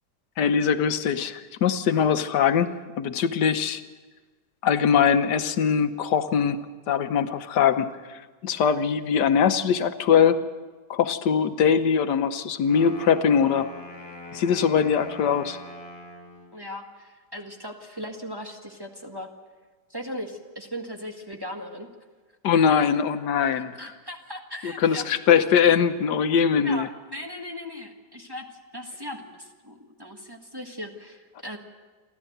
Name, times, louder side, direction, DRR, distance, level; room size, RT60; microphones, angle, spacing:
voice 1, 0.4-2.7 3.0-3.8 4.6-6.6 6.9-10.4 10.9-13.7 14.3-15.6 22.4-23.9 24.6-26.9, left 7 dB, 85° left, 9 dB, 1.5 m, -22 dB
Wind instrument woodwind instrument, 12.6-16.5, left 2 dB, 35° left, 4.4 m, -42 dB
voice 2, 16.5-19.3 19.9-21.9 23.4-25.1 26.6-28.4 28.7-31.6, equal, 15° right, 1 dB, 1.5 m, -38 dB
29.0 x 12.5 x 7.9 m, 1.4 s
omnidirectional pair, 1.8 m